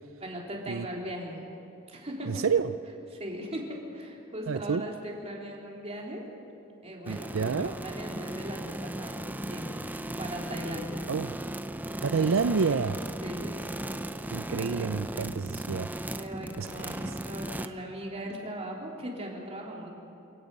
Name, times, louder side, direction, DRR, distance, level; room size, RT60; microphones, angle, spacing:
voice 1, 0.2-1.4 1.9-2.4 3.1-6.2 6.8-9.8 10.2-11.1 13.2-13.6 16.1-19.9, equal, 30° right, -1 dB, 3.3 m, -39 dB
voice 2, 2.3-2.7 4.5-4.8 7.1-7.8 11.1-11.3 12.0-13.0 14.3-15.9 16.6-16.7, right 5 dB, 85° right, 11 dB, 0.5 m, -28 dB
sound 1, 7.1-17.7, right 1 dB, 10° right, 0.6 m, -37 dB
29.0 x 16.5 x 5.4 m, 2.9 s
head